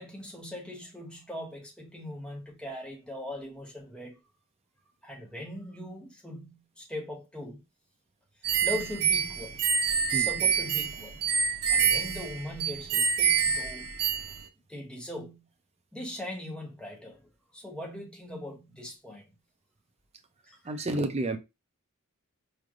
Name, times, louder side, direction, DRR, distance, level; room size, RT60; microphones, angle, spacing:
voice 1, 0.0-4.2 5.0-7.6 8.6-9.7 10.1-11.3 11.7-13.9 14.7-15.5 15.9-19.3 20.4-20.9, left 1 dB, 5° left, 0.9 m, -40 dB
sound 1, 8.4-14.4, right 7 dB, 80° right, 0.6 m, -27 dB
voice 2, 20.6-21.4, right 2 dB, 30° right, 0.5 m, -30 dB
4.9 x 3.2 x 2.5 m
head